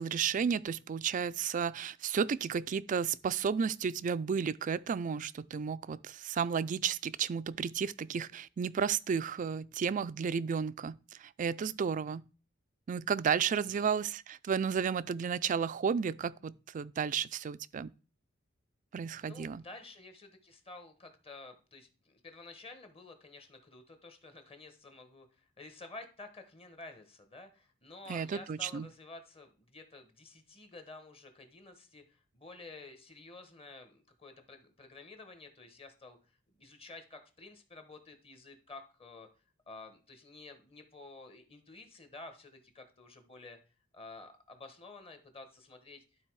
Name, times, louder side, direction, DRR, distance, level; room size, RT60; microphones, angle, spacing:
voice 1, 0.0-12.2 12.9-17.9 18.9-19.6 28.1-28.9, right 6 dB, 40° right, 0.3 m, -33 dB
voice 2, 19.2-36.2 36.6-39.3 39.7-43.6 43.9-46.0, left 3 dB, 30° left, 1.2 m, -51 dB
12.0 x 4.0 x 4.7 m
head